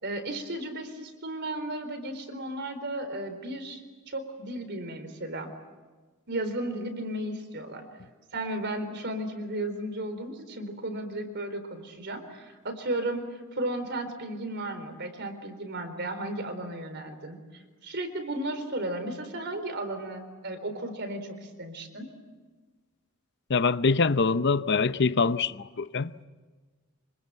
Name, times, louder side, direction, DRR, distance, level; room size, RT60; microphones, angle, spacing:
voice 1, 0.0-5.5 6.3-7.8 8.3-22.1, right 1 dB, 55° right, 4.1 m, -34 dB
voice 2, 23.5-26.2, left 4 dB, 55° left, 0.8 m, -24 dB
26.5 x 26.0 x 8.0 m
head